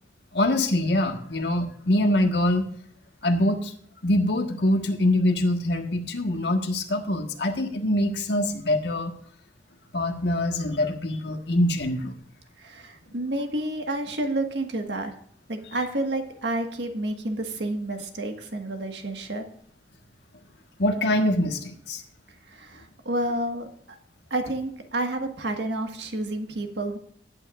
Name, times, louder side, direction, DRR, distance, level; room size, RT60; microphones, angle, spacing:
voice 1, 0.3-2.7 3.2-3.7 4.0-9.2 9.9-12.1 20.8-22.0, left 1 dB, 65° left, 4 dB, 1.5 m, -24 dB
voice 2, 12.6-15.1 15.5-19.5 22.5-23.7 24.3-27.0, right 1 dB, 70° right, 4 dB, 1.7 m, -30 dB
18.5 x 9.0 x 2.5 m, 0.63 s
head